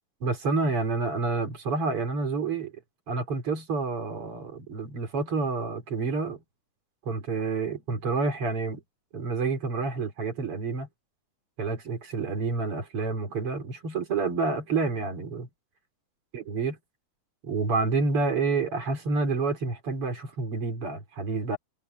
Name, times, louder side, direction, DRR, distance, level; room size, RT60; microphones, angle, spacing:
voice 1, 0.2-2.7 3.1-6.4 7.1-8.8 9.1-10.9 11.6-15.5 16.3-16.8 17.4-21.6, right 4 dB, 45° right, 4.6 m, -28 dB
omnidirectional pair, 3.7 m